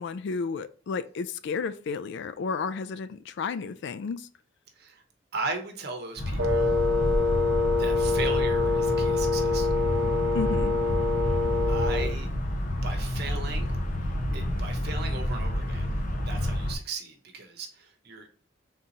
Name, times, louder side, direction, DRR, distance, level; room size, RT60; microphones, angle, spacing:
voice 1, 0.0-4.3 10.3-10.7, left 5 dB, 60° left, 0.3 m, -32 dB
voice 2, 5.3-6.7 7.8-9.7 11.7-12.3 12.8-13.7 14.3-15.9 16.2-18.3, right 3 dB, 55° right, 0.9 m, -37 dB
sound 1, 6.2-16.7, left 1 dB, 45° left, 0.7 m, -29 dB
Wind instrument woodwind instrument, 6.4-12.2, left 3 dB, 75° right, 0.7 m, -26 dB
3.6 x 2.8 x 4.0 m
head